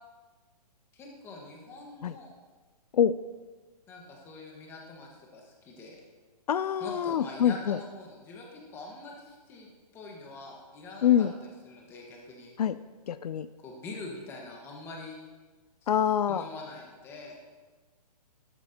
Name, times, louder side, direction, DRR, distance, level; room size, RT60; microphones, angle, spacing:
voice 1, 0.9-2.3 3.9-6.0 6.8-12.5 13.6-15.2 15.8-17.4, left 3 dB, 10° left, 0 dB, 1.4 m, -44 dB
voice 2, 6.5-7.8 11.0-11.3 12.6-12.7 13.1-13.5 15.9-16.4, left 9 dB, 70° left, 14 dB, 0.4 m, -25 dB
12.0 x 11.5 x 2.8 m, 1.3 s
hypercardioid pair, 165°, 20 cm